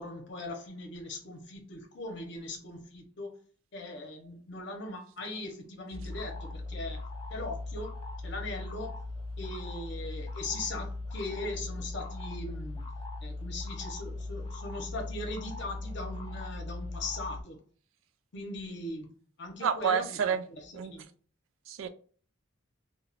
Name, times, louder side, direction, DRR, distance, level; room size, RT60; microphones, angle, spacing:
voice 1, 0.0-3.4 3.7-7.9 8.2-8.9 9.4-12.9 13.2-17.6 18.3-19.1 19.4-20.1 20.6-21.1, left 2 dB, 55° left, 0.7 m, -40 dB
sound 1, 5.9-17.4, left 2 dB, 25° left, 0.3 m, -39 dB
voice 2, 19.6-20.4 20.7-20.9 21.7-21.9, right 7 dB, 75° right, 0.3 m, -29 dB
2.4 x 2.2 x 3.2 m
head